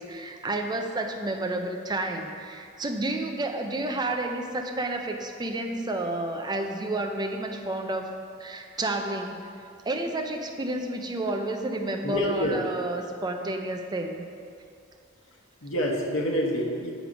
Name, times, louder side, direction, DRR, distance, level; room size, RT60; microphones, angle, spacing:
voice 1, 0.0-8.1 8.4-14.2, right 2 dB, 20° right, 3 dB, 0.5 m, -30 dB
voice 2, 12.0-12.6 15.6-16.9, equal, 85° left, -1 dB, 1.0 m, -27 dB
7.4 x 5.1 x 5.1 m, 2.4 s
head